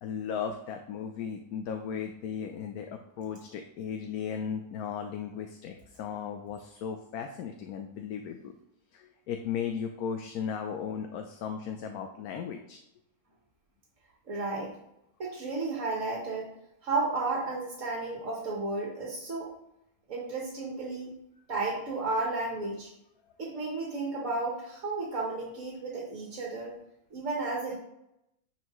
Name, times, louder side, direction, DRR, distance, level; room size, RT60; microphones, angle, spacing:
voice 1, 0.0-8.5 8.9-12.8, left 7 dB, 75° left, 5 dB, 1.1 m, -36 dB
voice 2, 14.3-14.7 15.2-16.5 16.8-19.5 20.1-21.1 21.5-22.9 23.4-26.7 27.1-27.8, right 3 dB, 55° right, -2 dB, 1.6 m, -33 dB
9.4 x 4.5 x 3.1 m, 0.84 s
omnidirectional pair, 1.6 m